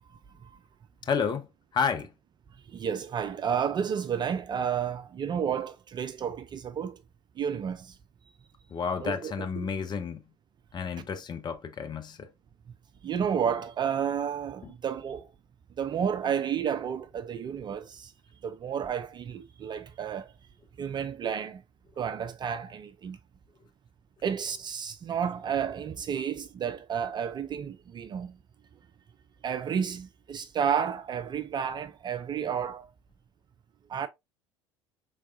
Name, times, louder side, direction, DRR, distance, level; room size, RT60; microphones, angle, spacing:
voice 1, 1.1-1.4 1.7-2.1 8.7-10.2 10.7-12.3 14.6-14.7, left 6 dB, 30° left, 0.7 m, -30 dB
voice 2, 2.7-7.0 7.4-7.9 9.0-9.6 11.0-11.1 13.0-15.3 15.8-18.1 18.4-20.3 20.8-21.6 22.0-23.2 24.2-28.4 29.4-32.9 33.9-34.1, right 8 dB, 30° right, 0.4 m, -31 dB
4.7 x 3.4 x 2.4 m
figure-of-eight pair, 65°, 16 cm